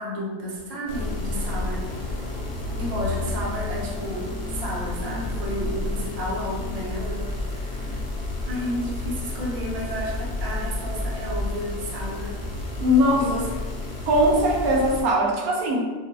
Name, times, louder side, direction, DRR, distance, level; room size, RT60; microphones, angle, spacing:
voice 1, 0.0-2.2 2.8-8.0 8.5-12.4 13.2-13.5, equal, 35° right, -5 dB, 0.7 m, -32 dB
sound 1, 0.9-15.0, left 2 dB, 55° left, 0.7 m, -31 dB
voice 2, 12.8-13.3 14.1-15.9, equal, 80° right, -1 dB, 1.1 m, -20 dB
5.0 x 2.6 x 2.3 m, 1.3 s
omnidirectional pair, 1.6 m